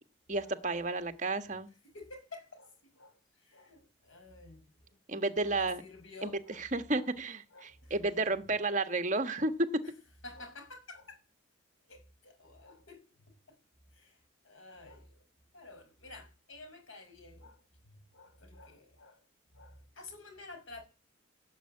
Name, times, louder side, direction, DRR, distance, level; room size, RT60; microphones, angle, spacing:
voice 1, 0.3-1.7 5.1-5.8 6.2-9.5, right 2 dB, 35° right, 1.4 m, -32 dB
voice 2, 1.8-5.0 5.5-6.6 6.9-7.1 7.5-7.9 9.4-9.5 9.8-9.9 10.2-11.2 11.9-13.6 13.9-14.2 14.4-15.2 15.5-19.2 19.5-20.8, left 2 dB, 85° left, 6.4 m, -52 dB
17.0 x 7.6 x 8.8 m
head